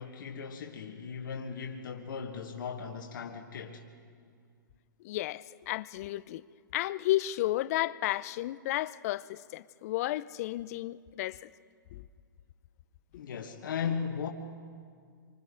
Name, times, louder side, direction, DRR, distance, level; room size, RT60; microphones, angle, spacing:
voice 1, 0.0-3.8 13.2-14.3, left 6 dB, 70° left, 1.5 m, -37 dB
voice 2, 5.0-6.4 6.7-11.5 11.9-12.0, left 15 dB, 45° left, 0.5 m, -32 dB
27.0 x 25.0 x 3.8 m
hypercardioid pair, 135°, 11 cm